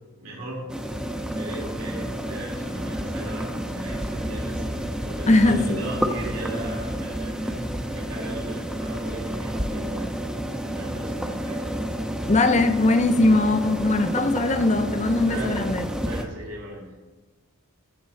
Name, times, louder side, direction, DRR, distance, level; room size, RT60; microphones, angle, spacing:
voice 1, 0.2-0.7 1.4-10.2 10.6-11.7 15.2-15.7 16.0-17.0, right 1 dB, 80° right, 2.6 m, -37 dB
sound 1, 0.7-16.2, equal, 5° right, 0.7 m, -30 dB
voice 2, 5.3-5.8 12.3-15.9, left 2 dB, 30° left, 0.7 m, -20 dB
13.5 x 6.1 x 4.2 m
head